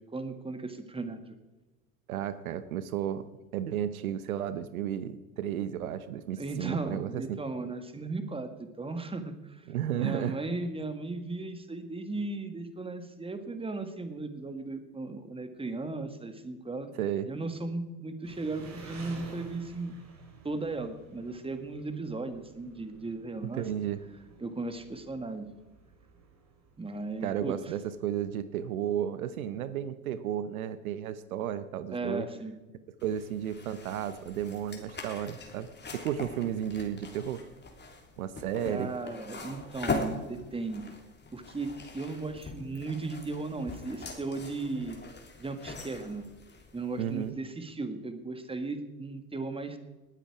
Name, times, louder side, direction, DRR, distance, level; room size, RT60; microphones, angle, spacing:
voice 1, 0.0-1.3 6.4-9.7 10.0-16.9 17.3-20.0 20.4-23.6 24.4-25.5 26.8-27.6 31.9-32.5 38.7-40.9 41.3-45.0 45.4-46.2 46.7-49.8, right 3 dB, 15° right, 9 dB, 1.8 m, -36 dB
voice 2, 2.1-3.2 3.5-7.4 9.7-10.4 17.0-17.3 23.6-24.0 27.2-32.3 33.0-37.4 38.2-38.9 47.0-47.3, right 10 dB, 80° right, 13 dB, 0.9 m, -33 dB
Engine, 18.2-28.4, right 5 dB, 40° right, 4.0 m, -52 dB
sound 1, 33.0-47.3, left 2 dB, 25° left, 3.3 m, -41 dB
19.5 x 9.2 x 4.9 m, 1.1 s
hypercardioid pair, 80°, 42 cm